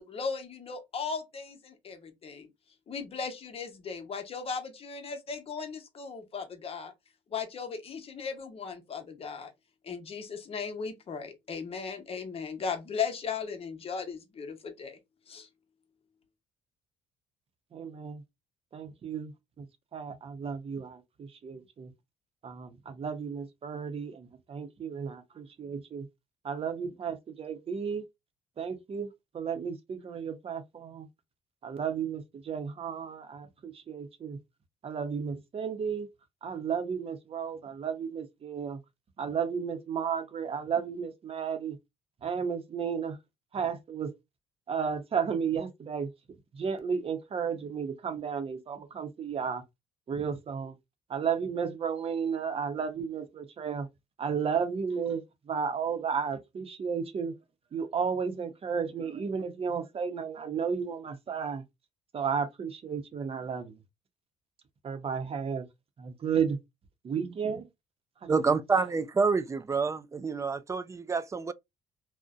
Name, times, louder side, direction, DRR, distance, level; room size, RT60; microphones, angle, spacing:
voice 1, 0.0-2.5 2.9-6.9 7.3-9.5 9.8-15.0 15.3-15.5, left 5 dB, 45° left, 0.8 m, -37 dB
voice 2, 17.7-18.2 18.7-19.3 19.6-19.7 19.9-21.9 22.4-26.1 26.4-28.0 28.6-29.1 29.3-31.1 31.6-34.4 34.8-36.1 36.4-38.8 39.2-41.8 42.2-43.2 43.5-44.1 44.7-46.1 46.5-49.6 50.1-50.8 51.1-53.9 54.2-57.3 57.7-61.6 62.1-63.8 64.8-65.7 66.0-66.6 67.0-67.7 68.2-68.4, right 6 dB, 45° right, 0.7 m, -33 dB
voice 3, 68.3-71.5, right 4 dB, 20° right, 0.3 m, -28 dB
2.5 x 2.1 x 2.4 m
supercardioid pair, 70°, 14 cm